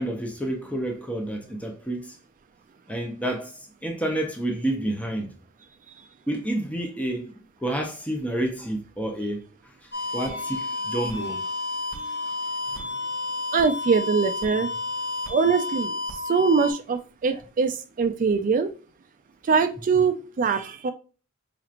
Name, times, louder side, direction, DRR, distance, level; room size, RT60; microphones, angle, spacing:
voice 1, 0.0-2.1 2.9-3.6 3.8-5.3 6.3-9.5 10.1-11.4 12.7-12.9, right 1 dB, 5° left, 0.7 m, -29 dB
sound 1, 9.9-16.7, left 2 dB, 55° left, 1.8 m, -31 dB
voice 2, 13.5-14.7 15.3-18.7 19.4-20.9, right 5 dB, 40° right, 0.4 m, -23 dB
5.0 x 3.0 x 2.4 m
head